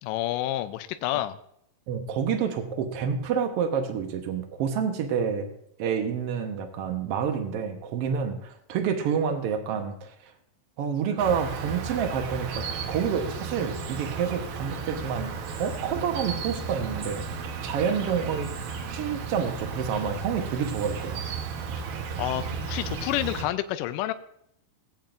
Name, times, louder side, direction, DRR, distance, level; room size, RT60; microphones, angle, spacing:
voice 1, 0.0-1.4 22.2-24.1, left 14 dB, 80° left, 10 dB, 2.1 m, -29 dB
voice 2, 1.9-5.5 5.8-10.1 10.8-15.3 15.6-17.2 17.6-18.5 18.9-21.2, right 7 dB, 70° right, 6 dB, 1.5 m, -28 dB
Insect, 11.2-23.4, right 5 dB, 85° right, 2.9 m, -34 dB
17.5 x 8.7 x 2.5 m, 0.73 s
omnidirectional pair, 4.0 m